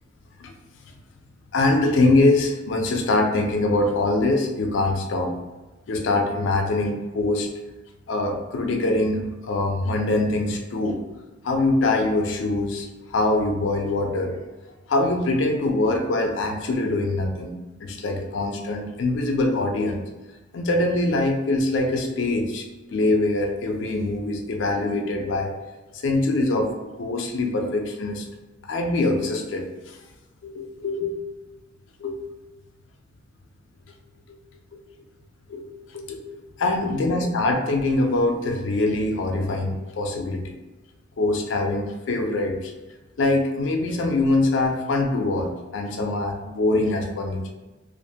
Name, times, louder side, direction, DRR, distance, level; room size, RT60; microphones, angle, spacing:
voice 1, 1.5-5.4 5.9-7.5 8.1-11.0 11.4-14.4 14.9-17.6 17.8-20.0 20.5-25.5 25.9-28.3 28.6-30.0 30.4-31.2 32.0-32.2 34.7-34.8 35.5-35.7 35.9-40.6 41.2-42.7 43.2-47.5, left 2 dB, 85° left, 4 dB, 0.4 m, -23 dB
2.4 x 2.1 x 2.7 m, 1.2 s
head